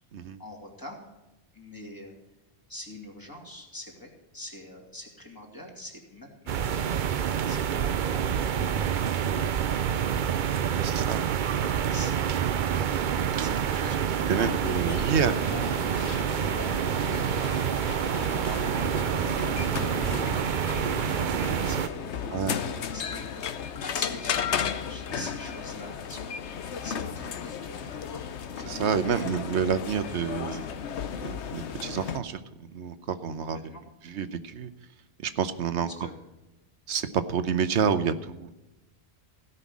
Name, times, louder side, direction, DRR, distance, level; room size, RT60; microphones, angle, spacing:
voice 1, 0.4-1.0 1.5-2.2 2.7-6.6 7.5-8.8 11.9-12.5 12.8-15.1 16.4-16.7 17.1-17.5 18.3-19.6 21.0-23.3 23.8-28.2 28.6-29.3 30.5-30.7 33.7-33.8 35.8-36.1, left 1 dB, 20° left, 0 dB, 2.7 m, -44 dB
sound 1, 6.5-21.9, right 8 dB, 55° right, 0.6 m, -27 dB
voice 2, 10.8-11.2 14.3-15.3 18.0-18.1 22.3-22.6 25.1-25.3 28.6-30.6 31.2-33.7 34.0-34.7 35.2-35.9 36.9-38.5, right 6 dB, 80° right, 12 dB, 1.2 m, -29 dB
sound 2, 14.3-32.2, left 7 dB, 80° left, 1.1 m, -35 dB
16.5 x 5.7 x 8.4 m, 1.0 s
omnidirectional pair, 1.1 m